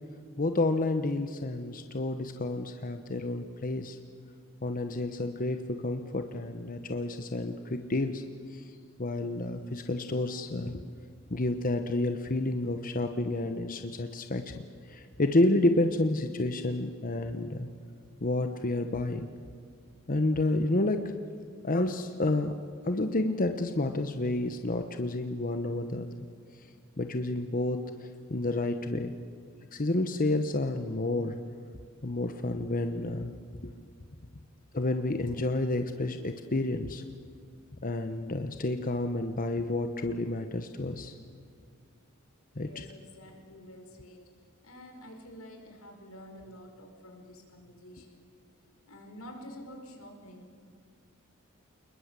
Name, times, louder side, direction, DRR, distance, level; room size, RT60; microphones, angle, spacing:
voice 1, 0.4-4.0 4.6-8.2 8.5-8.7 9.0-10.8 11.3-17.7 18.2-19.3 20.1-21.0 21.6-22.5 22.8-26.1 27.0-29.1 29.7-31.4 32.0-33.3 33.6-33.7 34.7-37.0 37.8-41.1 42.6-42.9, left 2 dB, 40° left, 7 dB, 1.1 m, -30 dB
voice 2, 42.5-44.3 44.6-48.3 48.6-50.7, equal, 85° left, 3 dB, 5.2 m, -49 dB
28.5 x 21.0 x 8.3 m, 2.1 s
head